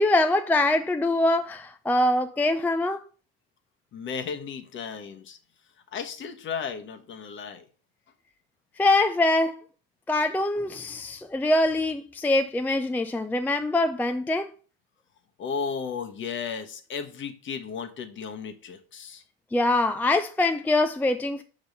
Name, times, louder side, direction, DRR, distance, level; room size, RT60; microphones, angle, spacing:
voice 1, 0.0-3.0 8.8-9.6 10.1-14.5 19.5-21.4, left 2 dB, 5° left, 0.4 m, -23 dB
voice 2, 3.9-5.4 5.9-7.6 15.4-19.2, left 6 dB, 40° left, 1.3 m, -34 dB
5.3 x 5.1 x 5.4 m
hypercardioid pair, 80°, 29 cm